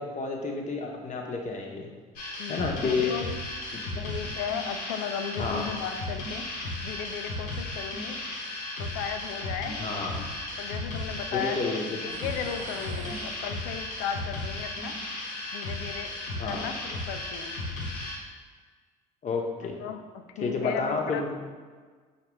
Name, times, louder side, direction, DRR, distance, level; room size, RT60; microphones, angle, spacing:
voice 1, 0.0-1.9 2.5-3.1 3.9-4.0 5.4-5.7 9.8-10.2 11.3-12.0 16.4-16.7 19.2-19.8 20.4-21.3, left 4 dB, 35° left, 1 dB, 0.9 m, -30 dB
sound 1, 2.1-18.2, left 2 dB, 85° left, 0.9 m, -35 dB
voice 2, 2.4-3.2 4.0-6.4 6.8-8.2 8.8-9.8 10.6-14.9 15.5-16.2 16.4-17.6 19.8-21.2, left 8 dB, 70° left, 7 dB, 0.4 m, -36 dB
sound 2, 12.1-13.9, right 4 dB, 40° right, 0.6 m, -44 dB
5.7 x 2.9 x 3.1 m, 1.5 s
hypercardioid pair, 55°, 21 cm